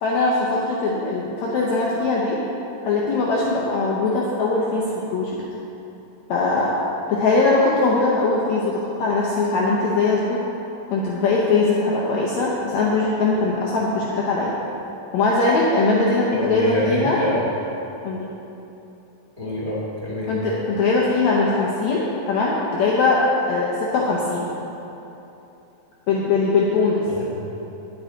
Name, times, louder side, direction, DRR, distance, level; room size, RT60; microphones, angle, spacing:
voice 1, 0.0-2.4 2.8-5.4 6.3-6.8 7.1-10.4 10.9-14.5 15.1-17.2 18.0-18.3 20.3-23.2 23.5-24.5 26.1-27.0, left 3 dB, 90° left, -4 dB, 1.6 m, -21 dB
voice 2, 16.3-17.4 19.4-20.3 27.1-27.2, left 1 dB, 35° right, -6 dB, 0.6 m, -25 dB
9.3 x 8.4 x 3.9 m, 3.0 s
omnidirectional pair, 4.3 m